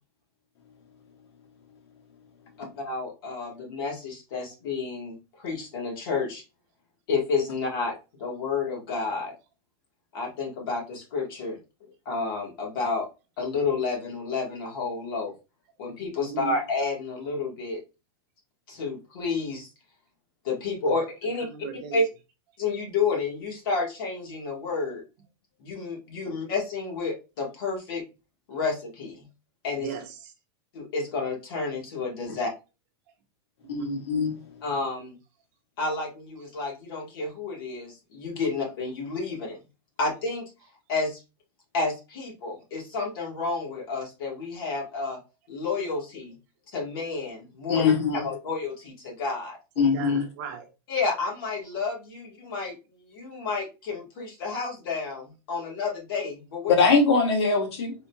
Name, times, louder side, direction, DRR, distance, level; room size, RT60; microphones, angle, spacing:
voice 1, 2.8-6.4 7.1-9.3 10.1-11.6 12.0-13.1 13.4-15.3 15.8-17.8 18.7-19.7 20.4-21.5 21.9-22.0 22.6-25.0 25.6-28.0 28.5-29.3 29.6-29.9 30.7-32.5 34.6-35.1 35.8-39.6 40.0-40.5 40.9-41.2 41.7-45.2 45.5-46.4 46.7-49.6 50.9-56.7, left 4 dB, 55° left, 1.5 m, -30 dB
voice 2, 16.2-16.5 21.5-22.0 29.8-30.3 33.8-34.0 49.8-50.7, right 7 dB, 40° right, 0.7 m, -37 dB
voice 3, 33.7-34.4 47.7-48.2 49.8-50.2 56.7-57.9, left 4 dB, 85° left, 1.3 m, -22 dB
3.6 x 2.8 x 2.3 m
supercardioid pair, 175°, 14 cm